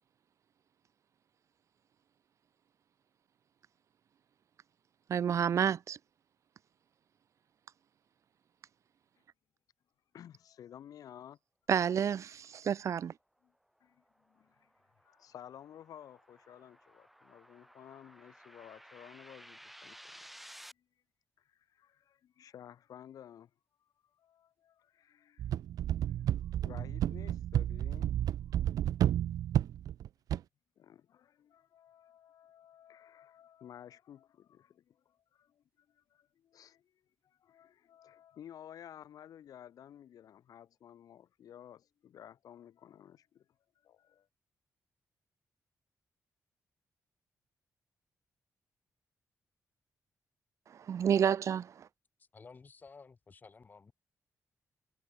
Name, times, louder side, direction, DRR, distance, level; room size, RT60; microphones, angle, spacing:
voice 1, 5.1-6.0 11.7-13.1 50.7-51.9, right 8 dB, 55° right, 0.7 m, -30 dB
voice 2, 10.1-11.4 13.4-13.5 13.8-14.7 15.0-20.3 20.7-20.9 21.4-23.5 23.8-28.3 30.8-43.5 43.8-44.3, left 10 dB, 85° left, 7.4 m, -54 dB
sound 1, 13.9-20.7, equal, ahead, 1.5 m, -56 dB
sound 2, 25.4-30.4, right 11 dB, 85° right, 0.3 m, -31 dB
voice 3, 52.2-53.9, left 4 dB, 30° left, 1.6 m, -54 dB
wide cardioid pair, 145°, 6 cm